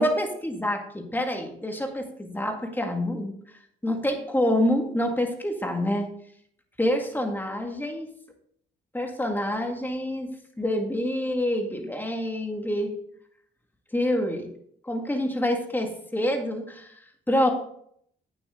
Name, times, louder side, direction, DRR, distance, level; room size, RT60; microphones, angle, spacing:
voice 1, 0.0-3.3 3.8-6.1 6.8-8.1 8.9-10.3 10.6-12.9 13.9-14.5 14.8-17.0 17.3-17.5, left 1 dB, 10° left, 3 dB, 2.0 m, -27 dB
8.9 x 7.6 x 3.8 m, 0.68 s
cardioid pair, 75°, 19 cm